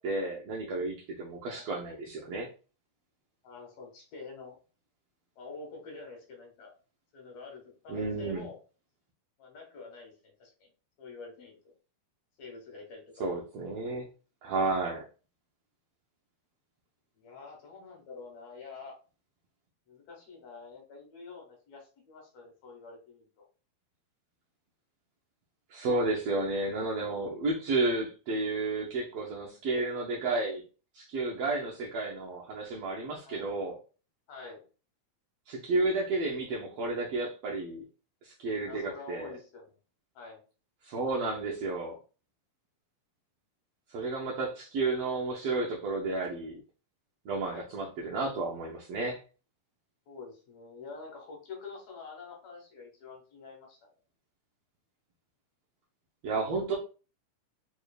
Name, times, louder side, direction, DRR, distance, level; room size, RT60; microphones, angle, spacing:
voice 1, 0.0-2.5 7.9-8.5 13.2-14.1 14.4-15.0 25.7-30.6 30.9-33.8 35.5-37.8 38.2-39.3 40.8-42.0 43.9-46.6 47.2-49.2 56.2-56.8, right 3 dB, 75° right, -2 dB, 1.5 m, -32 dB
voice 2, 3.4-4.6 5.4-6.7 7.1-8.6 9.4-10.7 11.0-11.6 12.4-13.3 17.2-19.0 19.9-23.5 33.2-33.5 34.3-34.6 38.7-39.8 40.2-40.4 47.5-47.7 50.1-53.9, left 4 dB, 70° left, 2 dB, 2.3 m, -47 dB
4.6 x 3.1 x 2.4 m, 0.35 s
omnidirectional pair, 3.4 m